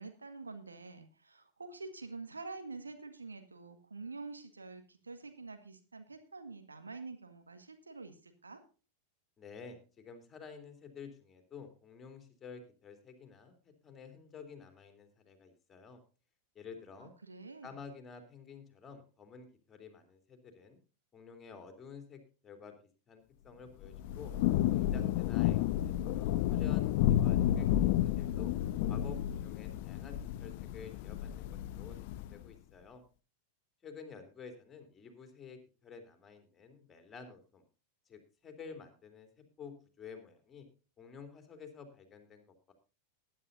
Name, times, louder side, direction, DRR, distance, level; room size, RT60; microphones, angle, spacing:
voice 1, 0.0-8.6 17.0-17.7, right 3 dB, 75° right, 7 dB, 1.8 m, -47 dB
voice 2, 9.4-16.0 16.5-17.1 17.6-20.8 21.1-22.7 23.1-24.3 24.7-28.5 28.9-33.0 33.8-37.6 38.1-40.6 41.0-42.7, left 5 dB, 20° left, 6 dB, 3.0 m, -51 dB
Thunder / Rain, 23.8-32.4, left 12 dB, 50° left, 0.5 m, -31 dB
20.0 x 9.9 x 2.6 m, 0.33 s
figure-of-eight pair, 90°, 0 cm